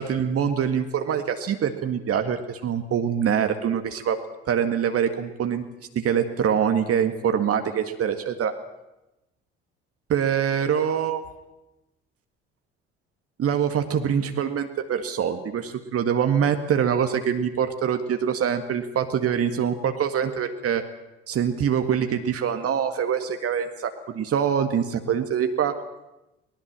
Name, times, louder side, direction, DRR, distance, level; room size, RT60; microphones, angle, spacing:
voice 1, 0.0-4.2 4.5-5.6 6.0-8.5 10.1-11.2 13.4-20.8 21.3-25.8, right 8 dB, 45° right, 7 dB, 1.9 m, -24 dB
22.5 x 20.0 x 7.5 m, 0.95 s
figure-of-eight pair, 50°, 31 cm